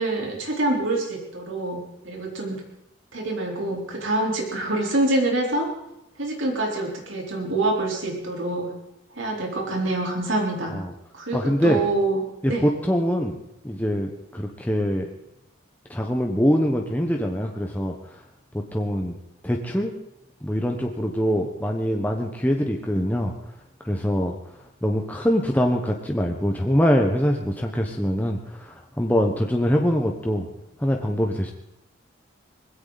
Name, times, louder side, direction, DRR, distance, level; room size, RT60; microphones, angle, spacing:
voice 1, 0.0-2.6 3.1-5.7 6.2-8.7 9.1-10.7 11.1-12.6, right 2 dB, 75° right, -1 dB, 4.1 m, -26 dB
voice 2, 11.3-11.8 12.4-13.3 13.6-15.1 15.9-18.2 18.5-19.2 19.4-19.9 20.4-23.3 23.8-24.3 24.8-30.5 30.8-31.5, equal, 10° left, 1 dB, 1.2 m, -23 dB
21.5 x 16.5 x 4.1 m, 0.87 s
head